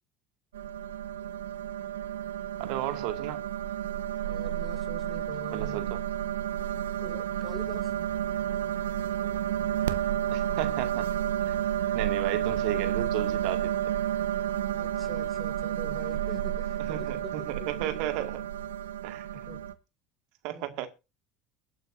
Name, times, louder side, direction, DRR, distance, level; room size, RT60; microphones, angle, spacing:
sound 1, 0.5-19.7, right 10 dB, 85° right, 1.0 m, -31 dB
voice 1, 2.6-3.4 5.5-6.0 10.3-11.1 11.5-11.6 11.9-13.7 16.8-18.4 19.0-19.3 20.4-20.9, right 13 dB, 65° right, 2.0 m, -34 dB
voice 2, 4.1-5.8 7.0-7.9 14.7-18.1 19.3-19.6 20.5-20.7, left 1 dB, 5° left, 4.7 m, -45 dB
23.0 x 9.0 x 2.7 m
hypercardioid pair, 80°, 0 cm